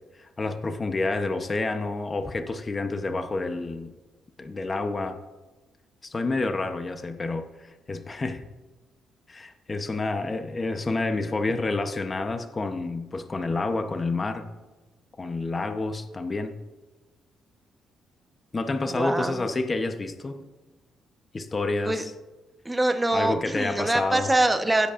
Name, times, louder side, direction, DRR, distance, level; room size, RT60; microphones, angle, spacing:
voice 1, 0.1-3.9 4.4-5.2 6.0-8.4 9.3-14.5 15.2-16.6 18.5-20.5 21.3-22.1 23.1-24.3, left 3 dB, 30° left, 7 dB, 0.8 m, -29 dB
voice 2, 18.9-19.5 21.9-22.0 22.6-24.9, right 2 dB, 10° right, 6 dB, 1.0 m, -24 dB
17.0 x 8.3 x 2.5 m, 1.2 s
cardioid pair, 90°, 0 cm